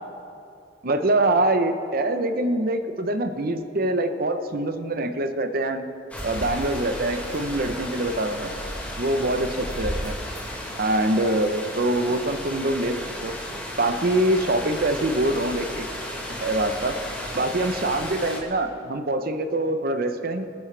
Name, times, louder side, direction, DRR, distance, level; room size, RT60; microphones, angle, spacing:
voice 1, 0.8-5.9 6.2-8.5 9.0-10.1 10.8-13.4 13.8-15.9 16.3-17.0 17.3-20.4, right 1 dB, 55° right, 8 dB, 0.8 m, -24 dB
sound 1, 6.1-18.4, equal, 10° left, 2.1 m, -34 dB
25.0 x 10.0 x 3.4 m, 2.6 s
head